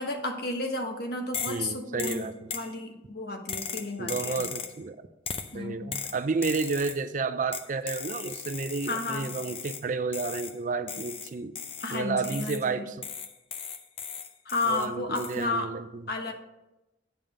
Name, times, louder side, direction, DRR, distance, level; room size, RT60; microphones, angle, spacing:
voice 1, 0.0-2.2 2.5-4.5 5.5-5.9 8.9-9.3 11.8-12.8 14.4-15.7 16.1-16.3, left 2 dB, 55° left, 4 dB, 1.2 m, -32 dB
sound 1, 1.3-1.7 2.0-2.7 3.5-4.8 5.3-5.5 5.9-7.0 7.5-9.9 10.1-10.6 10.9-12.7 13.0-14.9 15.1-15.4, left 6 dB, 30° left, 0.5 m, -37 dB
voice 2, 1.5-2.5 4.0-5.1 5.5-11.5 11.9-13.1 14.7-16.0, right 4 dB, 45° right, 11 dB, 0.4 m, -31 dB
9.0 x 5.2 x 5.3 m, 0.96 s
head